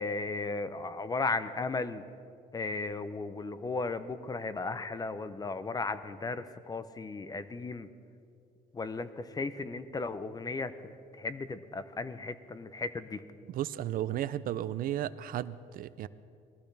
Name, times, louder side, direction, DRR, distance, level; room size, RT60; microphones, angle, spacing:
voice 1, 0.0-2.0 2.5-7.9 8.7-13.2, left 3 dB, 20° left, 13 dB, 0.6 m, -35 dB
voice 2, 13.5-16.1, right 12 dB, 60° right, 16 dB, 0.4 m, -34 dB
19.5 x 14.0 x 3.4 m, 2.4 s
cardioid pair, 110°, 17 cm